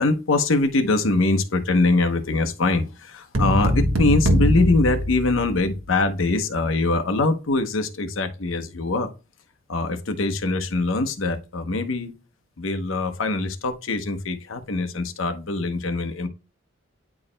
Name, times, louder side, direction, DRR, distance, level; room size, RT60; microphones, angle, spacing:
voice 1, 0.0-9.1 9.7-12.1 12.6-16.3, left 2 dB, 75° left, 0.9 m, -23 dB
sound 1, 3.3-5.9, equal, 80° right, 1.3 m, -22 dB
9.6 x 4.6 x 2.2 m
head